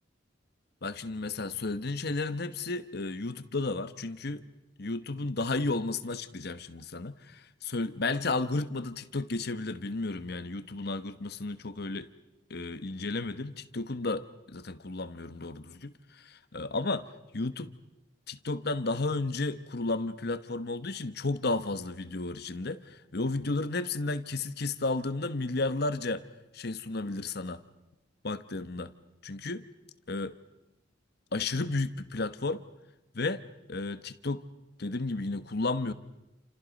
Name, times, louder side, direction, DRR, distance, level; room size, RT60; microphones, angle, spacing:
voice 1, 0.8-4.4 4.8-12.1 12.5-17.1 17.3-17.7 18.3-26.3 26.5-27.6 28.2-28.9 29.2-29.6 30.1-30.3 31.3-32.6 33.1-33.4 33.7-34.4 34.8-35.9, left 3 dB, 55° left, 12 dB, 1.1 m, -33 dB
29.0 x 28.0 x 5.2 m, 0.94 s
head